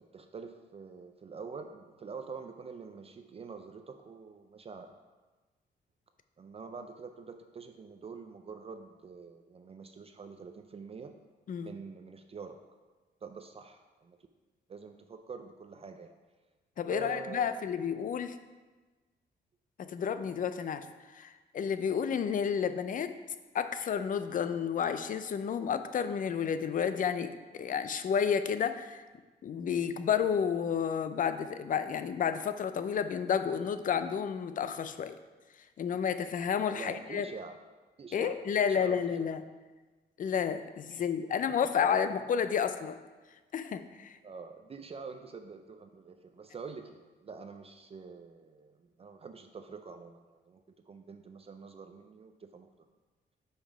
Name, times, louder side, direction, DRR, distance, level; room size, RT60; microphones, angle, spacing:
voice 1, 0.0-4.9 6.4-11.1 11.6-12.6 13.2-14.2 14.7-16.1 16.9-17.6 36.7-37.6 38.0-39.3 40.9-41.4 44.2-52.7, right 5 dB, 35° right, 7 dB, 0.4 m, -46 dB
voice 2, 16.8-18.4 19.8-20.9 21.1-23.1 23.5-29.0 29.4-35.1 35.8-37.3 38.1-39.4 40.2-43.0 43.5-44.2, left 7 dB, 50° left, 11 dB, 0.4 m, -31 dB
5.6 x 5.2 x 4.8 m, 1.3 s
cardioid pair, 115°, 18 cm